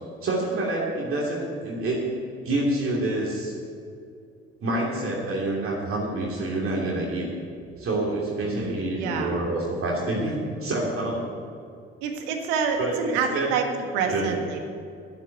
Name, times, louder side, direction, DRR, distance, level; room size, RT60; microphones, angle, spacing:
voice 1, 0.2-2.0 2.4-3.5 4.6-7.3 7.8-10.3 10.6-11.2 12.8-13.5 14.1-14.3, right 2 dB, 50° right, -3 dB, 2.9 m, -27 dB
voice 2, 8.4-9.3 12.0-13.7 13.9-14.7, right 6 dB, 70° right, 4 dB, 1.6 m, -28 dB
10.5 x 8.3 x 9.4 m, 2.4 s
figure-of-eight pair, 50°, 29 cm